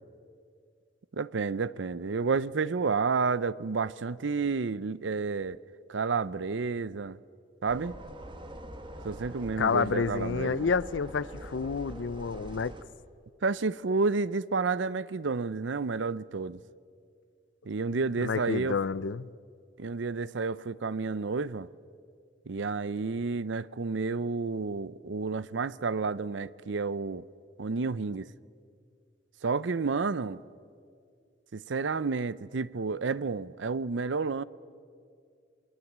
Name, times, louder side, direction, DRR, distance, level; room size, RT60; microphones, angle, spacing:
voice 1, 1.1-5.6 5.9-7.2 7.6-8.0 9.0-10.7 13.4-16.6 17.7-18.8 19.8-21.7 22.5-27.2 27.6-28.3 29.4-30.4 31.5-34.4, right 4 dB, 75° right, 0.6 m, -30 dB
sound 1, 7.7-12.8, right 1 dB, 25° right, 1.6 m, -44 dB
voice 2, 9.6-12.7 18.2-19.3, left 5 dB, 75° left, 0.5 m, -29 dB
28.0 x 22.5 x 7.4 m
head